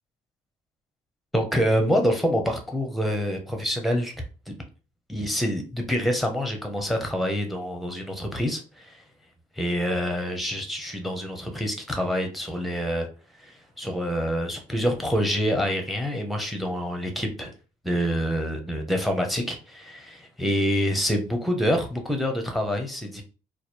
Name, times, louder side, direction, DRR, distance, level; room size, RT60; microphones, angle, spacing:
voice 1, 1.3-4.2 5.1-9.0 9.6-13.1 13.4-17.5 17.8-23.2, equal, ahead, 4 dB, 0.7 m, -26 dB
3.1 x 2.4 x 4.3 m, 0.35 s
cardioid pair, 150°, 15 cm